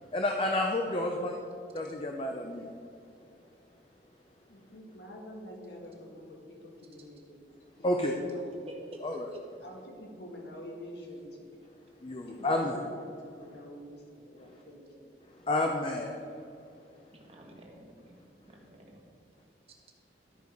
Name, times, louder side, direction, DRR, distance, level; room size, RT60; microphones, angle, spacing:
voice 1, 0.0-1.4 1.7-2.8 7.8-8.2 9.0-9.3 12.0-12.8 14.4-14.6 15.2-16.9, left 1 dB, 30° left, 2 dB, 0.5 m, -31 dB
voice 2, 4.5-7.4 7.8-8.5 9.6-11.6 12.3-15.1, equal, 75° left, -1 dB, 1.8 m, -47 dB
voice 3, 8.7-9.4 17.1-18.2 18.5-19.0, equal, 35° right, 0 dB, 1.3 m, -48 dB
12.5 x 4.8 x 5.2 m, 2.6 s
head